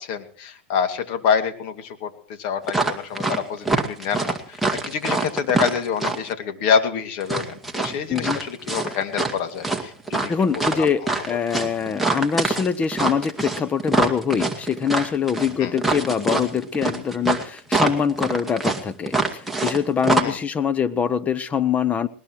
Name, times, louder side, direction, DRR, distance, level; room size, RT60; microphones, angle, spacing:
voice 1, 0.0-11.1 15.6-15.8 20.2-20.4, left 7 dB, 55° left, 8 dB, 2.5 m, -27 dB
sound 1, 2.7-3.4 3.6-6.3 7.2-9.4 9.6-19.8 20.0-20.2, right 3 dB, ahead, 2.2 m, -24 dB
voice 2, 10.3-11.0 11.3-22.1, left 7 dB, 20° left, 14 dB, 1.1 m, -24 dB
20.5 x 20.0 x 3.2 m, 0.43 s
hypercardioid pair, 120°, 6 cm